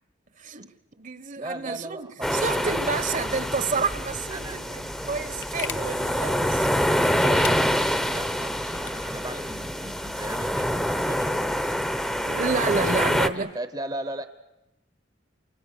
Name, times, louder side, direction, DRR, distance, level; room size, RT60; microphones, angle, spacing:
voice 1, 0.4-0.7 1.0-7.6 12.2-13.5, right 4 dB, 45° right, 1.1 m, -30 dB
voice 2, 1.4-2.8 4.3-4.6 7.6-11.8 12.6-14.3, right 1 dB, 20° right, 0.9 m, -37 dB
sound 1, 2.2-13.3, equal, 5° left, 0.8 m, -26 dB
sound 2, 3.9-9.1, left 9 dB, 80° left, 0.9 m, -42 dB
28.0 x 25.0 x 6.7 m
head